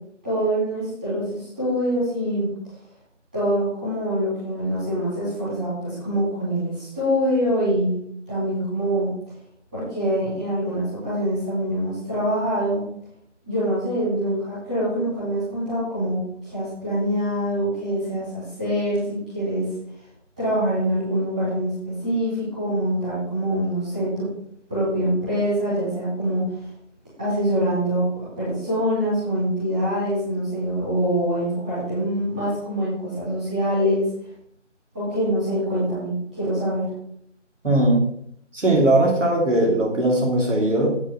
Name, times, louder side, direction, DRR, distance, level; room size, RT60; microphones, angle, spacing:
voice 1, 0.2-2.5 3.3-7.9 8.3-9.1 9.7-12.8 13.5-19.7 20.4-24.3 24.7-26.4 27.2-28.1 28.4-34.1 34.9-36.9, equal, 5° right, -13 dB, 2.9 m, -24 dB
voice 2, 37.6-38.0 38.5-41.0, right 1 dB, 80° right, -1 dB, 3.0 m, -19 dB
8.5 x 6.5 x 6.7 m, 0.68 s
figure-of-eight pair, 175°, 36 cm